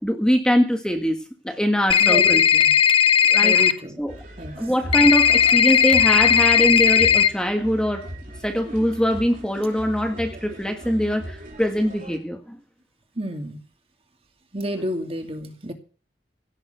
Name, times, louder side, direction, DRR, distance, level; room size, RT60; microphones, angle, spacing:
voice 1, 0.0-1.2 1.4-2.4 3.3-3.7 4.0-4.2 4.6-8.1 8.4-12.6, equal, 5° left, 1.6 m, -22 dB
sound 1, 1.9-3.7 4.9-7.3, left 7 dB, 30° left, 0.9 m, -16 dB
voice 2, 2.0-2.7 3.4-4.0 4.4-4.5 13.2-13.6 14.5-15.7, equal, 30° right, 2.4 m, -30 dB
sound 2, 4.1-12.2, equal, 50° right, 4.1 m, -37 dB
17.0 x 7.0 x 8.1 m
head